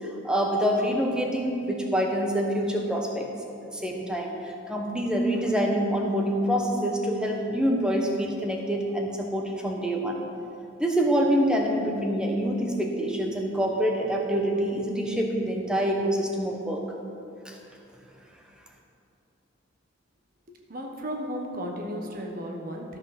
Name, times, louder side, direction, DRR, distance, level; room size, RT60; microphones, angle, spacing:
voice 1, 0.2-3.3 3.7-10.2 10.8-16.8 17.4-17.6, equal, 5° right, 0 dB, 1.1 m, -26 dB
voice 2, 20.7-23.0, equal, 45° right, 2 dB, 1.1 m, -34 dB
13.0 x 6.1 x 6.0 m, 2.7 s
head